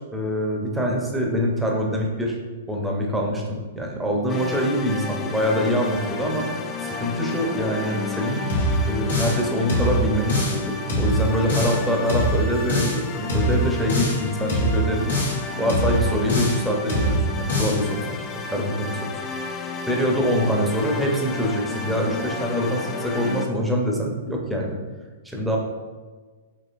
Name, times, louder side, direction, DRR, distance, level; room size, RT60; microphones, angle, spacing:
voice 1, 0.0-2.4 2.7-6.5 6.8-8.5 8.9-15.2 15.5-19.2 19.9-24.8 25.2-25.6, equal, 5° right, -1 dB, 0.7 m, -24 dB
sound 1, 4.3-23.5, left 5 dB, 30° left, 0.4 m, -32 dB
sound 2, 8.5-9.4 9.7-10.6 10.9-11.8 12.1-13.0 13.3-14.2 14.5-15.4 15.7-16.6 16.9-17.8, equal, 75° left, 1.2 m, -23 dB
4.4 x 3.0 x 2.5 m, 1.4 s
hypercardioid pair, 115°, 0 cm